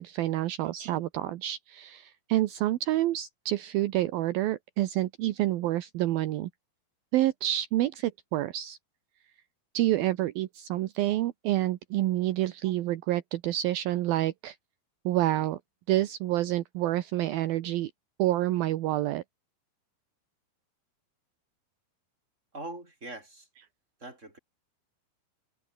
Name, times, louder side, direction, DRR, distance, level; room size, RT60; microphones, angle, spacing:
voice 1, 0.0-6.5 7.1-8.8 9.7-14.6 15.1-15.6 15.9-17.9 18.2-19.2, right 15 dB, 75° right, 2.7 m, -28 dB
voice 2, 22.5-23.5 24.0-24.4, right 2 dB, 15° right, 7.4 m, -42 dB
omnidirectional pair, 4.5 m